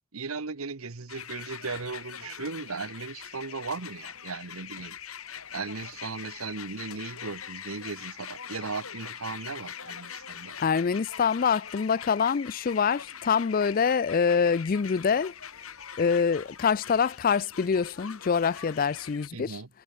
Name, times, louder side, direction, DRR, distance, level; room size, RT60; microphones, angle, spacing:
voice 1, 0.1-5.0 5.5-10.6 19.3-19.7, right 4 dB, 75° right, 1.1 m, -37 dB
sound 1, 1.1-19.3, left 8 dB, 75° left, 4.5 m, -43 dB
voice 2, 10.6-15.3 16.0-19.6, left 6 dB, 40° left, 0.4 m, -25 dB
head